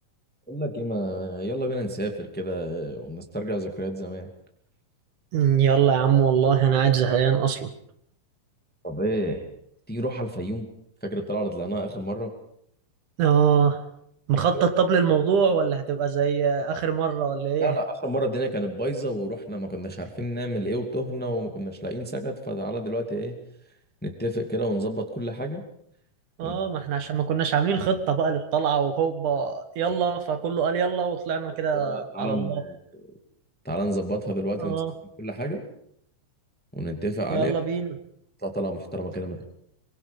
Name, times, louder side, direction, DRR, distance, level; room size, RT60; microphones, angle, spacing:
voice 1, 0.5-4.3 8.8-9.4 9.9-10.7 11.0-12.3 14.3-14.6 17.6-23.4 24.0-25.6 26.4-26.6 31.5-32.8 33.6-34.7 35.2-35.6 36.7-37.5 38.4-39.4, right 1 dB, 5° left, 4 dB, 1.8 m, -30 dB
voice 2, 5.3-7.7 13.2-13.8 14.3-17.8 26.4-32.6 34.6-34.9 37.3-37.9, right 7 dB, 70° right, 9 dB, 2.9 m, -23 dB
24.0 x 22.5 x 5.4 m, 0.70 s
omnidirectional pair, 3.8 m